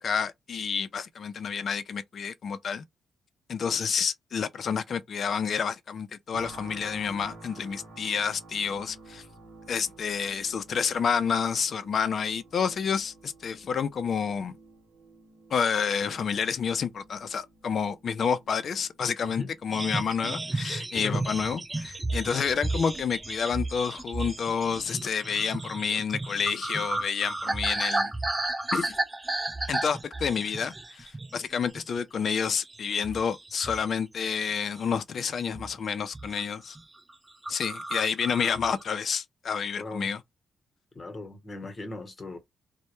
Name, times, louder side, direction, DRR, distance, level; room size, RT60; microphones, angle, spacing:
voice 1, 0.0-2.8 3.5-9.2 9.7-14.6 15.5-28.1 28.7-29.0 29.7-36.8 37.5-40.2, left 6 dB, 60° left, 0.4 m, -29 dB
sound 1, 6.3-21.3 21.8-22.0, right 3 dB, 85° right, 0.8 m, -51 dB
sound 2, 19.7-31.4 31.7-32.0 32.4-34.0 34.3-35.0 35.5-35.8 36.0-36.4 36.7-36.8 37.1-37.2 37.4-38.8, right 2 dB, 20° right, 0.4 m, -33 dB
voice 2, 39.8-40.1 40.9-42.4, left 3 dB, 40° left, 0.9 m, -37 dB
2.1 x 2.0 x 2.9 m
supercardioid pair, 55°, 0 cm